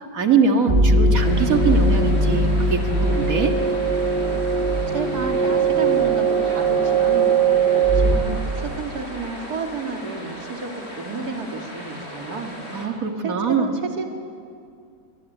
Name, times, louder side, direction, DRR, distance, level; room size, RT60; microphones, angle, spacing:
voice 1, 0.0-3.5 12.7-13.7, right 5 dB, 65° right, 4 dB, 2.2 m, -22 dB
sound 1, 0.7-9.3, right 3 dB, 35° right, 2.2 m, -20 dB
sound 2, 1.2-12.9, equal, 45° left, 5.2 m, -37 dB
voice 2, 4.9-12.6 13.2-14.1, right 4 dB, 80° right, 3 dB, 2.9 m, -31 dB
23.5 x 21.0 x 9.3 m, 2.4 s
omnidirectional pair, 1.6 m